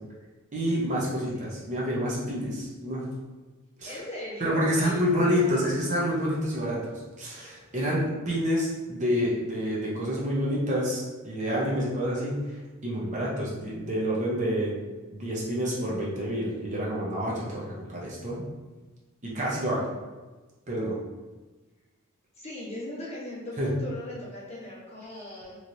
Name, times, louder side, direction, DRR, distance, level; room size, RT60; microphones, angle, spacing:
voice 1, 0.5-3.0 3.8-4.0 4.4-12.4 12.8-14.7 15.1-18.4 19.2-19.9 20.7-21.0 23.6-23.7, equal, 35° right, -5 dB, 0.6 m, -28 dB
voice 2, 3.8-5.7 22.3-25.6, left 1 dB, 30° left, -7 dB, 0.8 m, -39 dB
3.1 x 2.9 x 2.6 m, 1.2 s
head